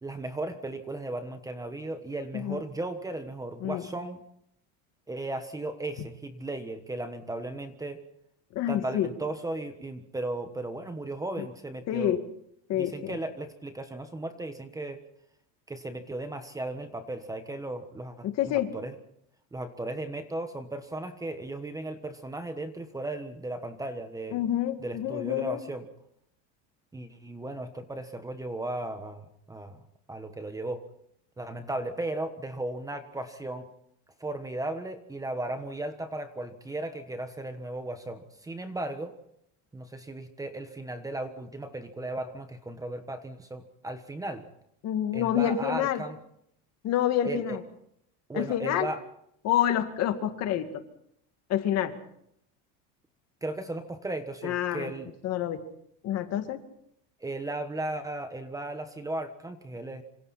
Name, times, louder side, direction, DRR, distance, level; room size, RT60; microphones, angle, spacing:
voice 1, 0.0-4.2 5.1-8.0 8.7-12.2 12.7-15.0 15.7-18.9 19.5-24.4 24.8-25.8 26.9-29.8 30.1-30.8 31.4-33.7 34.2-39.1 39.7-44.5 45.1-46.2 47.2-47.6 48.3-49.0 53.4-55.1 57.2-60.0, right 2 dB, 10° right, 8 dB, 1.3 m, -36 dB
voice 2, 8.5-9.1 11.4-11.5 11.9-12.2 12.7-13.2 18.2-18.7 24.3-25.6 44.8-46.0 46.8-47.6 48.3-48.9 49.4-50.8 51.5-51.9 54.4-54.9 55.2-55.6 56.0-56.6, left 11 dB, 45° left, 7 dB, 2.3 m, -28 dB
26.5 x 26.0 x 4.3 m, 0.72 s
cardioid pair, 155°, 36 cm